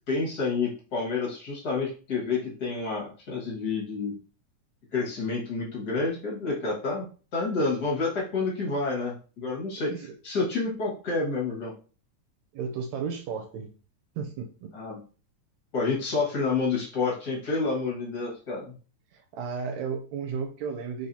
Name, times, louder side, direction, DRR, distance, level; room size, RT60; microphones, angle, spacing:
voice 1, 0.1-4.1 4.9-7.1 7.3-9.9 10.2-11.7 14.7-15.0 15.7-18.7, left 4 dB, 40° left, -3 dB, 1.8 m, -29 dB
voice 2, 12.5-13.7 14.2-14.7 19.1-21.1, right 6 dB, 75° right, 3 dB, 1.8 m, -34 dB
4.7 x 4.0 x 2.8 m, 0.37 s
omnidirectional pair, 3.5 m